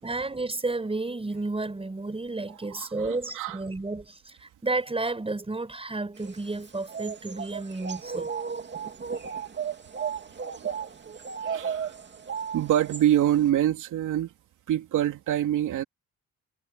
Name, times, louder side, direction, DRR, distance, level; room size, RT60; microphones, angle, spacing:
voice 1, 0.0-8.3, right 2 dB, 20° right, 5.9 m, -32 dB
voice 2, 2.7-3.6 10.6-10.7 11.5-12.0 12.5-14.3 14.7-15.8, right 11 dB, 80° right, 3.0 m, -25 dB
sound 1, 6.2-13.5, right 7 dB, 35° right, 2.6 m, -35 dB
cardioid pair, 90°, 30 cm